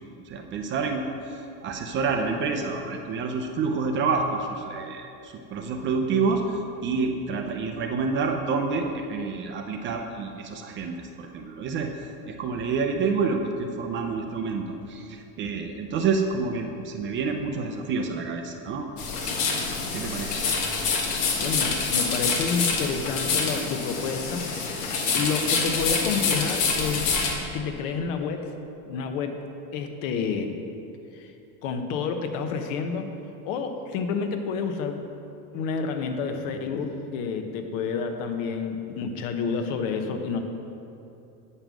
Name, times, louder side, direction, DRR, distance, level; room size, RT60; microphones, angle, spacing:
voice 1, 0.3-1.0 1.3-20.4, right 4 dB, 30° right, 4 dB, 0.5 m, -28 dB
sound 1, 19.0-27.3, left 4 dB, 50° left, 1.4 m, -26 dB
voice 2, 21.4-24.8 25.1-27.1 27.5-28.5 28.9-29.4 29.7-30.6 31.1-31.3 31.6-33.1 33.4-35.0 35.5-40.4, left 5 dB, 70° left, 6 dB, 1.0 m, -29 dB
8.7 x 5.5 x 6.1 m, 2.7 s
cardioid pair, 160°, 41 cm